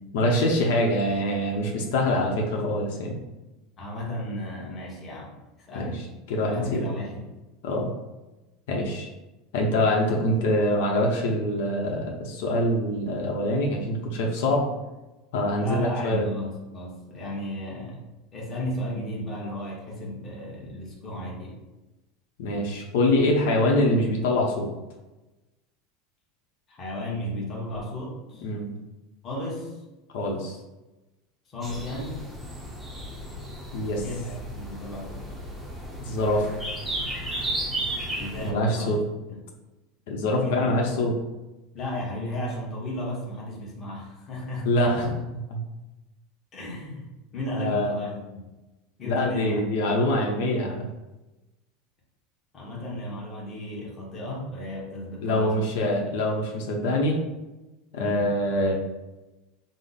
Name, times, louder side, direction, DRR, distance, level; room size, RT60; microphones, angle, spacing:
voice 1, 0.1-3.2 5.7-6.9 7.6-7.9 8.7-9.1 9.5-14.7 15.3-16.3 22.4-24.7 28.4-28.7 30.1-30.6 33.7-34.0 36.0-36.5 38.4-39.0 40.1-41.1 44.6-45.6 47.5-47.9 49.0-50.9 55.2-57.2 57.9-58.7, left 1 dB, 70° left, 0 dB, 0.8 m, -24 dB
voice 2, 3.8-5.3 5.7-6.1 6.4-7.3 15.6-18.0 18.3-21.6 26.7-28.5 29.2-29.8 31.5-32.2 34.0-35.3 38.1-38.9 39.3-39.4 40.4-41.0 41.7-44.7 46.5-48.5 49.0-49.6 52.5-55.7 56.1-56.2 57.9-58.3, left 1 dB, 20° left, -3 dB, 1.0 m, -34 dB
sound 1, 31.6-38.5, right 1 dB, 5° right, 0.6 m, -34 dB
5.0 x 2.0 x 4.0 m, 1.0 s
supercardioid pair, 165°, 0 cm